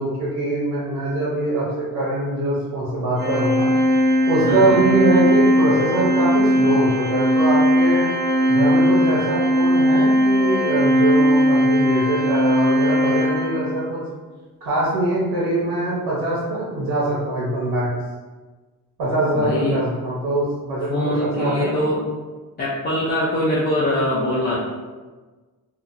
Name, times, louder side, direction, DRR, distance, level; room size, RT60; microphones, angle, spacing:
voice 1, 0.0-3.7 4.3-8.1 8.5-14.0 14.6-17.9 19.0-21.8, right 2 dB, 85° right, -9 dB, 0.9 m, -23 dB
Organ, 3.2-13.9, equal, 25° right, 0.6 m, -18 dB
voice 2, 4.4-4.8 19.3-19.8 20.9-22.0 22.6-24.6, left 1 dB, 30° left, -8 dB, 0.4 m, -22 dB
2.8 x 2.2 x 2.4 m, 1.3 s
wide cardioid pair, 160°, 36 cm